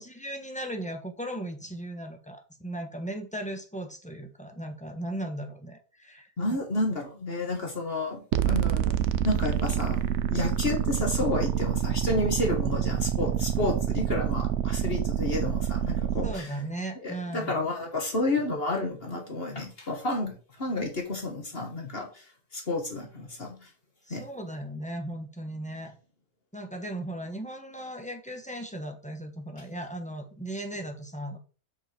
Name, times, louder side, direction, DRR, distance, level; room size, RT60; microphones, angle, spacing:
voice 1, 0.0-6.6 16.2-17.5 24.1-25.9 26.5-31.4, right 1 dB, 5° left, 3 dB, 1.2 m, -37 dB
voice 2, 6.4-8.2 8.5-8.9 9.2-10.0 10.3-16.6 17.0-22.2 22.5-23.7 24.1-24.2, left 2 dB, 40° left, 2 dB, 1.7 m, -31 dB
sound 1, 8.3-16.3, right 10 dB, 65° right, 0.8 m, -27 dB
6.2 x 5.3 x 4.5 m, 0.37 s
omnidirectional pair, 1.5 m